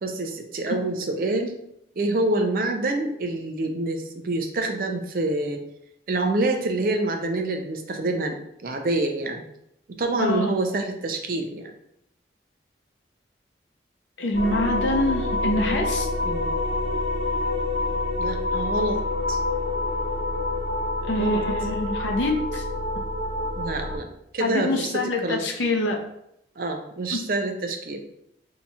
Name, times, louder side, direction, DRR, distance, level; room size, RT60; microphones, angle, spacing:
voice 1, 0.0-1.6 2.0-5.6 6.1-8.4 8.6-9.4 10.0-11.7 16.2-16.5 18.2-19.0 19.3-19.4 21.2-21.4 23.6-24.1 24.3-25.4 26.6-28.0, right 2 dB, 50° right, 4 dB, 0.4 m, -26 dB
voice 2, 10.2-10.5 14.2-16.1 21.0-22.6 24.4-26.0 27.1-27.2, left 2 dB, 90° left, 2 dB, 0.6 m, -25 dB
sound 1, 14.3-24.0, left 2 dB, 80° right, 1.1 m, -27 dB
2.8 x 2.3 x 4.1 m, 0.77 s
head